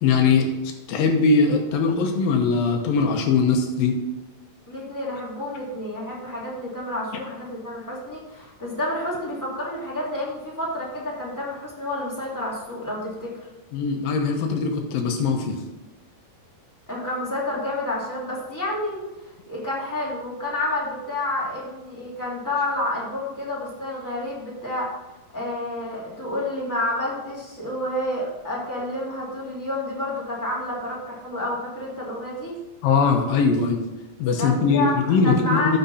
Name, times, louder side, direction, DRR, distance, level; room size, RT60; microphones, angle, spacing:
voice 1, 0.0-0.5 0.9-4.0 13.7-15.6 32.8-33.8 34.2-35.8, left 4 dB, 85° left, 3 dB, 2.9 m, -21 dB
voice 2, 4.7-13.3 16.9-19.0 19.5-24.9 25.3-32.6 34.4-35.8, left 1 dB, 5° left, -6 dB, 2.2 m, -29 dB
14.0 x 5.6 x 4.2 m, 1.0 s
omnidirectional pair, 4.0 m